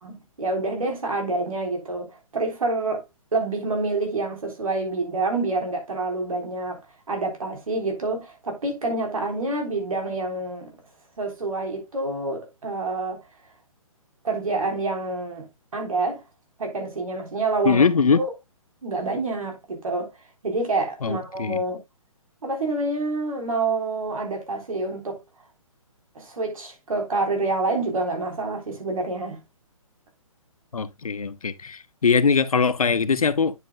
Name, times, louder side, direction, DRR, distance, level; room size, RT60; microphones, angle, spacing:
voice 1, 0.0-3.0 3.3-6.8 7.1-10.8 11.2-13.2 14.2-15.5 15.7-16.2 16.6-17.8 18.1-18.3 18.8-20.1 20.4-21.8 22.4-25.2 26.2-29.4, right 3 dB, 75° right, 3.8 m, -27 dB
voice 2, 17.6-18.2 21.0-21.6 30.7-33.5, left 5 dB, 85° left, 0.8 m, -21 dB
9.7 x 7.6 x 2.2 m
hypercardioid pair, 140°, 18 cm